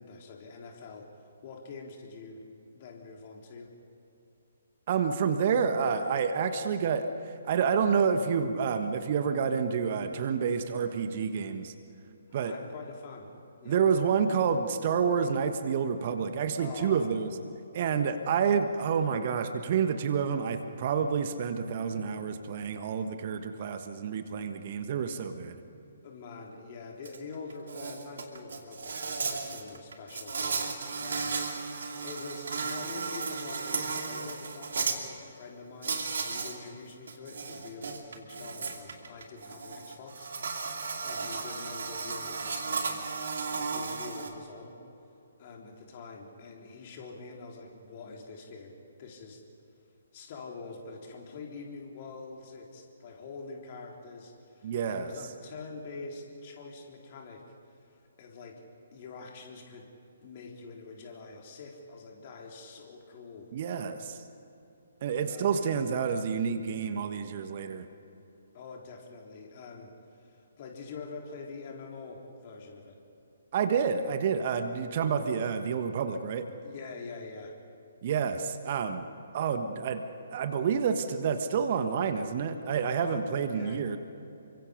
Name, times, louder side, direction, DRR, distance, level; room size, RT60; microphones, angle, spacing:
voice 1, 0.0-3.7 12.4-13.3 13.6-14.4 16.6-17.2 26.0-30.7 31.0-43.0 43.4-44.8 45.4-49.4 50.1-57.5 57.9-58.6 58.9-59.9 60.2-63.5 65.2-65.6 68.5-73.0 76.6-77.6 83.0-83.8, left 4 dB, 35° left, 1 dB, 3.9 m, -45 dB
voice 2, 4.9-11.7 12.3-12.5 13.6-17.3 17.7-25.6 54.6-55.1 63.5-64.2 65.0-67.8 73.5-76.5 78.0-79.1 79.3-80.0 80.3-84.0, right 6 dB, 40° right, 8 dB, 1.4 m, -29 dB
Insect, 27.0-27.2 27.5-35.0 35.8-36.6 36.9-44.3, right 4 dB, 60° right, 2.7 m, -35 dB
29.5 x 24.5 x 5.2 m, 2.9 s
figure-of-eight pair, 130°, 0 cm